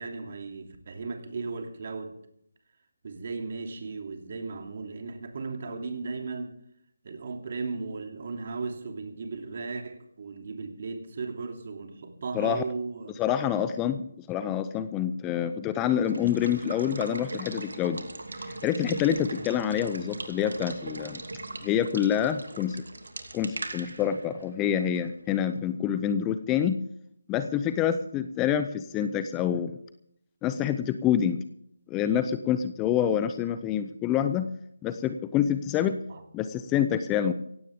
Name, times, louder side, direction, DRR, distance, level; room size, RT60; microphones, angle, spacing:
voice 1, 0.0-2.1 3.0-6.6 7.0-13.1 36.1-36.2, right 4 dB, 45° right, 4 dB, 2.8 m, -36 dB
voice 2, 13.2-18.0 18.6-21.2 21.6-22.8 23.3-26.8 27.3-29.8 30.4-31.4 31.9-34.5 34.8-36.0 36.3-37.3, left 9 dB, 15° left, 11 dB, 0.6 m, -27 dB
Water / Water tap faucet / Liquid, 15.9-25.6, right 2 dB, 75° right, 2.6 m, -40 dB
17.0 x 16.5 x 3.6 m, 0.72 s
figure-of-eight pair, 160°, 0 cm